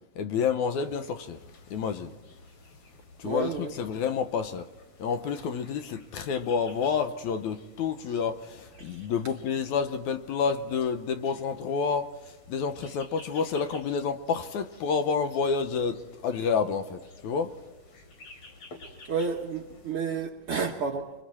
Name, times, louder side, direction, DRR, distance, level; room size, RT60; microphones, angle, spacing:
voice 1, 0.2-1.4 1.7-2.1 3.2-4.7 5.0-12.1 12.5-17.5, left 6 dB, 70° left, 2.2 m, -29 dB
sound 1, 0.8-20.0, left 2 dB, 50° left, 3.9 m, -52 dB
voice 2, 3.2-3.7 8.8-9.1 19.1-21.1, right 5 dB, 60° right, 1.6 m, -31 dB
30.0 x 23.0 x 4.3 m
omnidirectional pair, 3.8 m